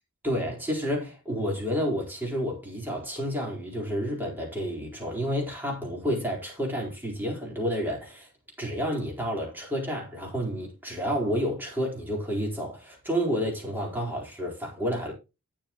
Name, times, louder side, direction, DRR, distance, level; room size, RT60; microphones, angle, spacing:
voice 1, 0.2-8.3 8.6-15.1, equal, 10° right, 4.1 m, -30 dB
12.5 x 9.0 x 3.0 m
head